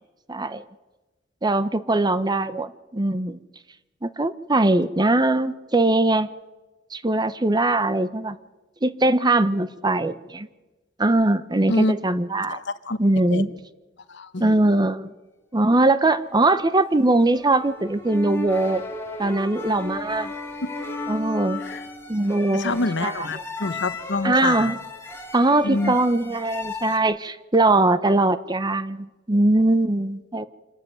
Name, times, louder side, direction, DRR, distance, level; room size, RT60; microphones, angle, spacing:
voice 1, 0.3-0.6 1.4-3.4 4.0-6.3 6.9-8.4 8.8-10.5 11.0-12.6 13.0-13.5 14.4-15.1 15.5-18.8 19.2-20.3 21.1-21.6 22.1-23.3 24.2-24.8 25.3-30.5, right 2 dB, 20° right, 14 dB, 0.7 m, -21 dB
voice 2, 12.5-13.0 13.3-13.4 14.1-14.5 20.6-20.7 21.6-21.8 22.5-24.7 25.6-26.0, left 2 dB, 60° left, 13 dB, 1.0 m, -26 dB
sound 1, 16.5-27.0, left 3 dB, 10° left, 2.5 m, -35 dB
26.0 x 13.5 x 9.2 m, 1.1 s
head